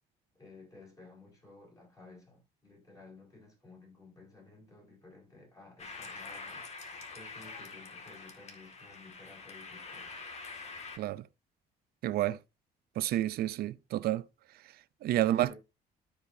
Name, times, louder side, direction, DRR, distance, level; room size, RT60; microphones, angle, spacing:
voice 1, 0.3-10.1 15.0-15.6, left 3 dB, 20° left, 5.8 m, -54 dB
sound 1, 5.8-11.0, left 4 dB, 40° left, 2.0 m, -45 dB
voice 2, 12.0-12.4 13.0-14.2 15.0-15.5, right 14 dB, 65° right, 0.6 m, -29 dB
13.0 x 5.1 x 2.7 m
cardioid pair, 110°, 17 cm